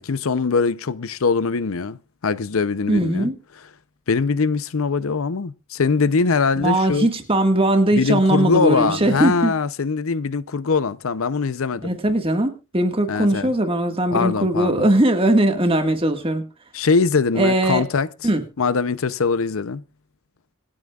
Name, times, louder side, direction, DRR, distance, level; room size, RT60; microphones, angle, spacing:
voice 1, 0.0-2.0 2.2-3.3 4.1-7.1 7.9-11.9 13.1-13.5 14.1-14.9 16.7-18.1 18.6-19.8, left 4 dB, 80° left, 0.6 m, -22 dB
voice 2, 2.9-3.4 6.6-9.6 11.8-16.4 17.4-17.8 18.2-18.4, right 1 dB, 25° right, 1.7 m, -19 dB
26.5 x 8.8 x 2.4 m
head